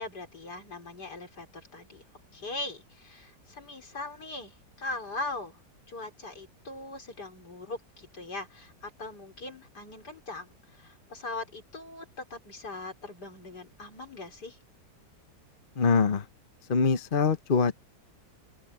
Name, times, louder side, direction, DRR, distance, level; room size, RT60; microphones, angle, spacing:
voice 1, 0.0-2.0 2.3-5.6 5.9-14.6, left 2 dB, 60° left, 5.1 m, -40 dB
voice 2, 15.8-16.3 16.7-17.8, left 5 dB, 35° left, 1.0 m, -24 dB
open air
omnidirectional pair, 2.0 m